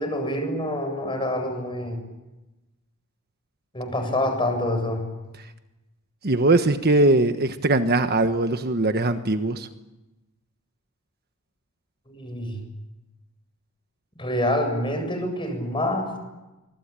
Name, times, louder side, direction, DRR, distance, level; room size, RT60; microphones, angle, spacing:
voice 1, 0.0-2.0 3.7-5.0 12.1-12.6 14.2-16.1, left 1 dB, 25° left, 5 dB, 7.7 m, -26 dB
voice 2, 6.2-9.7, right 2 dB, 45° right, 8 dB, 1.3 m, -21 dB
25.0 x 23.5 x 9.0 m, 1.0 s
head